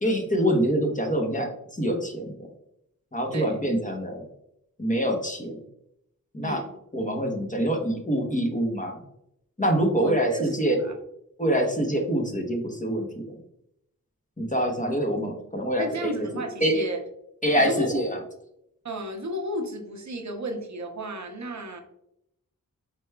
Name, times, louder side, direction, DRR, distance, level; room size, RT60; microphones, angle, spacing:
voice 1, 0.0-2.3 3.1-4.3 4.8-5.6 6.3-6.6 6.9-9.0 9.6-10.8 11.4-13.4 14.4-16.1 16.6-16.8 17.4-18.2, equal, 20° left, 2 dB, 1.0 m, -25 dB
voice 2, 6.4-6.7 10.0-10.9 15.8-17.0 17.6-18.1 18.8-21.8, equal, 55° right, 4 dB, 0.8 m, -33 dB
4.9 x 3.4 x 2.2 m, 0.77 s
cardioid pair, 45°, 35 cm